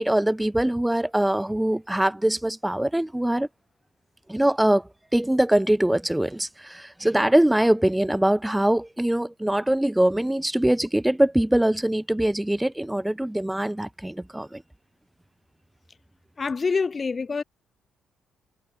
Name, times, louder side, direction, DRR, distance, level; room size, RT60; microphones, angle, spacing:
voice 1, 0.0-3.5 4.3-14.6, right 1 dB, 5° right, 7.8 m, -23 dB
voice 2, 16.4-17.4, left 4 dB, 35° left, 7.5 m, -26 dB
cardioid pair, 90°, 0 cm